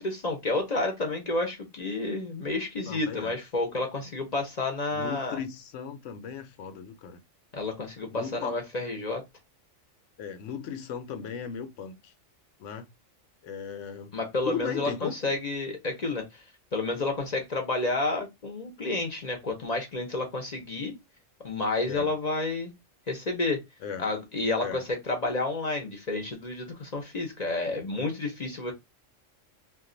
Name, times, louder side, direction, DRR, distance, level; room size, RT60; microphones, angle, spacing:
voice 1, 0.0-5.4 7.5-9.2 14.1-16.4 16.7-20.9 21.4-22.7 23.1-23.6 24.0-28.7, left 2 dB, 40° left, 0.7 m, -30 dB
voice 2, 2.9-3.4 4.9-7.2 8.1-8.6 10.2-12.1 12.6-12.9 13.4-14.1 14.4-15.3 21.9-22.1 23.8-24.1 24.6-24.8, left 7 dB, 70° left, 0.9 m, -37 dB
2.4 x 2.3 x 3.7 m
omnidirectional pair, 1.3 m